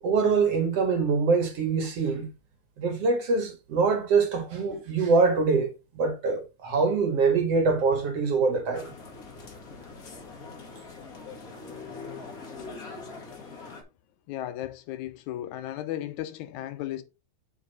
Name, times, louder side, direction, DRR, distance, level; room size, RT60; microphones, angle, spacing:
voice 1, 0.0-2.3 2.8-8.9, right 4 dB, 55° right, 2.6 m, -24 dB
sound 1, 8.7-13.8, left 4 dB, 35° left, 1.7 m, -42 dB
voice 2, 14.3-17.0, left 13 dB, 80° left, 2.0 m, -35 dB
7.4 x 5.1 x 4.1 m
omnidirectional pair, 3.5 m